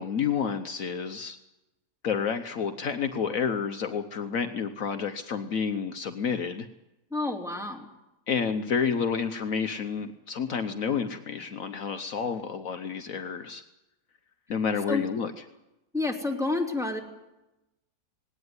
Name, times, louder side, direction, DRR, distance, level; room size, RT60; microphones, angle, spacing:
voice 1, 0.0-1.4 2.0-6.7 8.3-13.6 14.5-15.3, left 6 dB, 65° left, 8 dB, 1.3 m, -30 dB
voice 2, 7.1-7.9 14.9-15.0 15.9-17.0, left 3 dB, ahead, 1 dB, 2.8 m, -29 dB
19.0 x 18.0 x 9.6 m, 0.98 s
omnidirectional pair, 1.6 m